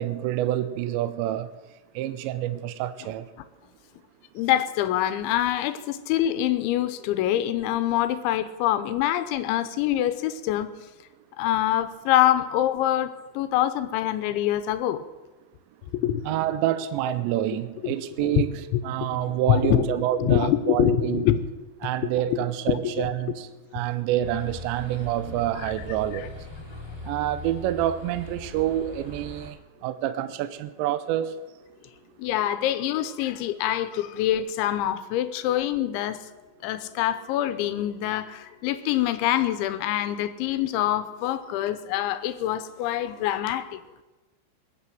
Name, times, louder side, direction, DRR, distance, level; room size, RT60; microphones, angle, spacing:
voice 1, 0.0-1.5 2.0-3.3 16.3-21.2 21.8-23.5 23.7-26.3 27.0-29.6 29.8-31.3, right 12 dB, 80° right, 2.7 m, -27 dB
voice 2, 4.3-10.7 11.4-15.1 15.9-16.2 17.8-18.4 18.7-21.4 21.8-22.4 22.7-23.1 23.7-23.8 25.6-25.7 26.1-26.3 32.2-36.3 36.6-43.8, left 12 dB, 80° left, 3.0 m, -25 dB
sound 1, 24.2-29.5, left 2 dB, 10° right, 1.2 m, -40 dB
21.5 x 8.9 x 7.6 m
omnidirectional pair, 5.7 m